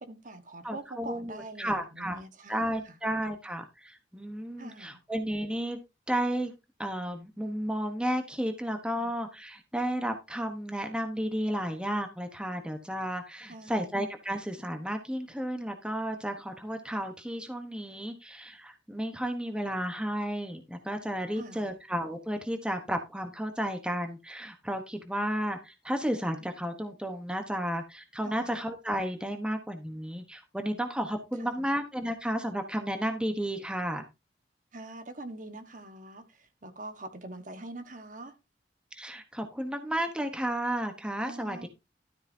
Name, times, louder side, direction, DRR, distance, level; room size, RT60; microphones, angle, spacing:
voice 1, 0.0-3.0 4.6-5.0 8.9-9.1 13.5-13.9 21.3-21.7 28.2-28.5 31.4-31.7 34.7-38.4 41.2-41.7, right 2 dB, 45° right, 1.4 m, -44 dB
voice 2, 0.6-2.2 2.5-5.8 6.1-6.5 6.8-34.0 38.9-41.7, equal, 5° right, 1.0 m, -33 dB
12.5 x 8.8 x 2.7 m
head